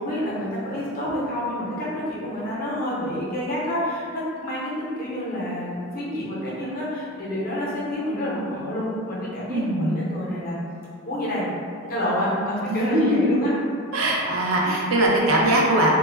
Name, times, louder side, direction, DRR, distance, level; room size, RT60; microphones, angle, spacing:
voice 1, 0.0-10.6 11.0-11.5 11.9-13.5, left 1 dB, 40° left, -7 dB, 0.6 m, -28 dB
voice 2, 9.5-9.9 12.4-13.5 13.9-15.9, right 1 dB, 75° right, -2 dB, 0.5 m, -21 dB
2.2 x 2.0 x 3.2 m, 2.3 s
head